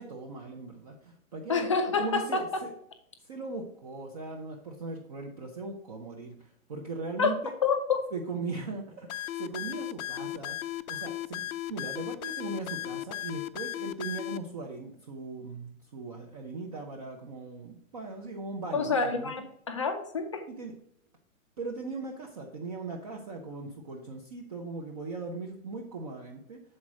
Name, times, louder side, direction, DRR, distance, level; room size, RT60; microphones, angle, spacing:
voice 1, 0.0-1.7 2.0-2.7 3.2-7.5 8.1-19.3 20.5-20.7 21.6-26.6, right 3 dB, 30° right, 1 dB, 0.6 m, -39 dB
voice 2, 1.5-2.6 7.2-7.3 7.6-8.0 18.7-20.4, left 5 dB, 25° left, 6 dB, 0.4 m, -28 dB
sound 1, 9.1-14.4, left 14 dB, 80° left, 0.6 m, -36 dB
7.6 x 4.2 x 4.8 m, 0.69 s
hypercardioid pair, 175°, 42 cm